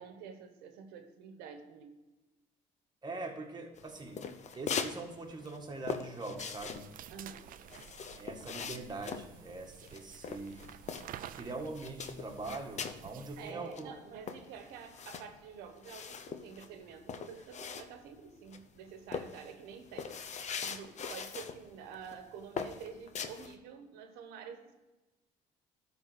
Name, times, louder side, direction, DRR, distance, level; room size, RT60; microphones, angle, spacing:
voice 1, 0.0-2.0 7.1-7.4 13.4-20.1 20.6-24.7, right 6 dB, 90° right, 7 dB, 1.2 m, -48 dB
voice 2, 3.0-4.2 4.5-6.9 8.1-10.7 11.3-13.9, right 3 dB, 25° right, 2 dB, 1.8 m, -42 dB
sound 1, 3.8-5.0 5.2-11.4 11.7-13.1 13.4-13.5 13.7-18.2 18.5-18.8 19.1-21.6 21.9-22.2 22.6-23.5, left 6 dB, 45° left, 0.8 m, -41 dB
sound 2, 6.4-13.5, right 11 dB, 60° right, 0.5 m, -51 dB
12.0 x 4.1 x 6.4 m, 1.1 s
supercardioid pair, 85°, 16 cm